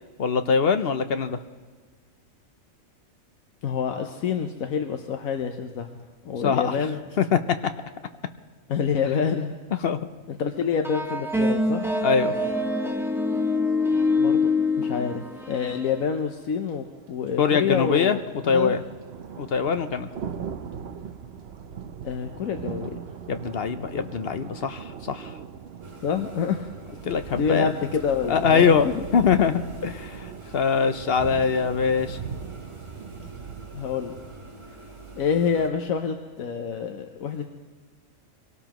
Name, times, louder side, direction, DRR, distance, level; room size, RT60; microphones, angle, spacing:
voice 1, 0.2-1.4 6.4-6.7 7.2-7.7 9.7-10.1 12.0-12.3 17.4-18.2 18.5-18.8 19.4-20.1 23.3-25.3 27.1-27.7 28.3-32.2, left 6 dB, 55° left, 9 dB, 0.8 m, -23 dB
voice 2, 3.6-7.0 8.7-9.5 10.3-11.9 14.2-14.5 14.8-18.7 22.0-23.0 26.0-26.7 27.1-29.0 33.7-34.2 35.1-37.5, left 6 dB, 80° left, 5 dB, 1.2 m, -27 dB
sound 1, 10.8-16.0, left 2 dB, ahead, 0.6 m, -25 dB
sound 2, 15.6-15.7 16.6-34.4, right 7 dB, 55° right, 0.9 m, -40 dB
sound 3, 25.8-35.7, right 3 dB, 25° right, 1.3 m, -44 dB
24.5 x 18.0 x 3.0 m, 1.5 s
omnidirectional pair, 1.4 m